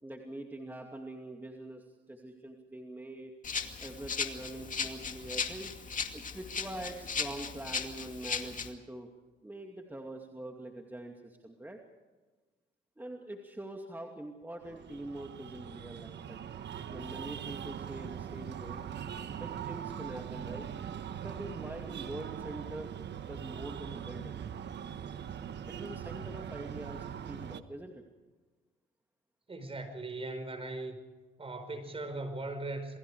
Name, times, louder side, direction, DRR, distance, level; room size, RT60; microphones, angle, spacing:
voice 1, 0.0-3.3 3.8-5.7 6.1-9.1 9.4-11.8 13.0-16.4 16.9-18.8 19.4-20.7 21.2-22.9 23.3-24.4 25.7-28.0, right 1 dB, 10° right, 2 dB, 2.6 m, -44 dB
Rattle (instrument), 3.4-8.7, left 5 dB, 40° left, 2.4 m, -37 dB
Breathing, 14.6-27.6, right 8 dB, 60° right, 1.4 m, -41 dB
voice 2, 29.5-31.0 31.4-33.0, right 2 dB, 30° right, 8 dB, 5.2 m, -39 dB
28.5 x 21.5 x 5.0 m, 1.3 s
cardioid pair, 90°, 20 cm